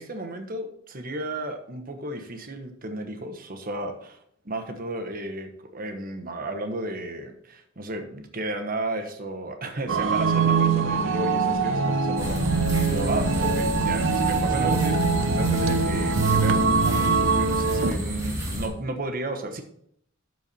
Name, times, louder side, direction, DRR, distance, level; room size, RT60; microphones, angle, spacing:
voice 1, 0.0-4.2 4.4-19.6, right 1 dB, 45° right, 5 dB, 1.2 m, -33 dB
sound 1, 9.9-17.9, right 5 dB, 65° right, 0.7 m, -23 dB
sound 2, 12.2-18.7, left 1 dB, 15° right, 1.9 m, -29 dB
12.5 x 4.6 x 4.3 m, 0.68 s
head